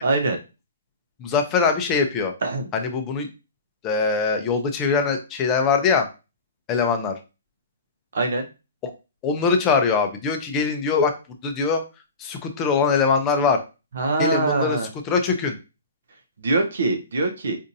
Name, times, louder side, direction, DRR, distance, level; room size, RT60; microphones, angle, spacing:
voice 1, 0.0-0.4 2.4-2.7 8.1-8.5 14.0-14.9 16.4-17.6, right 3 dB, 65° right, 5 dB, 0.6 m, -23 dB
voice 2, 1.2-2.3 2.7-3.3 3.8-6.1 6.7-7.2 8.8-8.9 9.2-11.1 11.4-11.8 12.2-13.6 14.2-14.8 15.0-15.6, left 5 dB, 20° left, 5 dB, 0.5 m, -22 dB
4.3 x 2.6 x 2.6 m, 0.29 s
hypercardioid pair, 155°, 0 cm